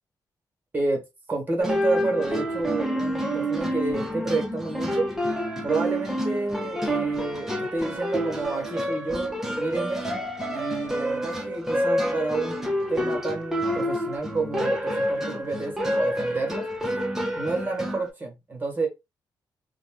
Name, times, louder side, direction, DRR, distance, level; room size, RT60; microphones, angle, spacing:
voice 1, 1.3-5.1 5.6-10.0 10.5-12.6 12.9-16.6 17.4-18.9, right 3 dB, 25° right, 1.2 m, -29 dB
sound 1, 1.6-18.1, equal, 5° right, 0.7 m, -28 dB
2.5 x 2.2 x 3.4 m
cardioid pair, 120°, 8 cm